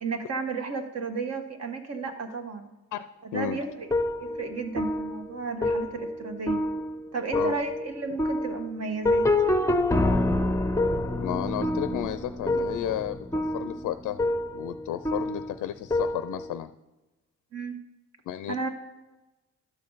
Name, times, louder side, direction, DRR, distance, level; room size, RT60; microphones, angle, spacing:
voice 1, 0.0-2.7 3.2-3.9 4.2-6.6 7.1-9.3 17.5-17.9 18.5-18.7, right 4 dB, 55° right, 5 dB, 1.4 m, -33 dB
sound 1, 3.4-16.6, left 1 dB, 10° left, 0.6 m, -27 dB
voice 2, 11.2-16.7 18.3-18.7, left 12 dB, 85° left, 12 dB, 0.5 m, -33 dB
12.5 x 6.6 x 4.0 m, 1.1 s
cardioid pair, 80°, 31 cm